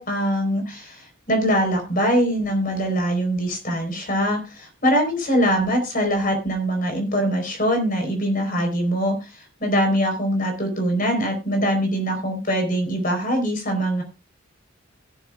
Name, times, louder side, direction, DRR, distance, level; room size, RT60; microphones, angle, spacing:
voice 1, 0.0-14.0, equal, 40° left, 5 dB, 4.4 m, -23 dB
16.5 x 11.5 x 2.4 m, 0.27 s
head